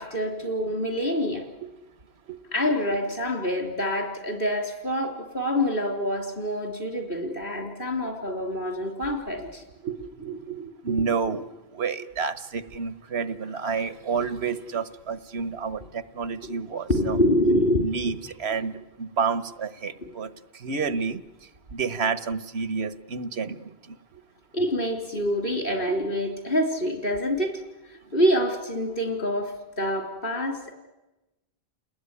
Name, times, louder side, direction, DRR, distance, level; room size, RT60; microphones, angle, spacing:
voice 1, 0.0-1.4 2.5-9.6 16.4-16.6 16.9-17.9 20.0-20.1 24.5-27.5 28.1-30.7, equal, 65° left, 4 dB, 3.9 m, -26 dB
voice 2, 9.8-11.4 11.7-17.2 17.8-20.3 20.6-21.2 21.7-23.7 25.9-26.0, right 5 dB, 90° right, 14 dB, 1.4 m, -29 dB
30.0 x 20.0 x 9.8 m, 1.1 s
omnidirectional pair, 1.0 m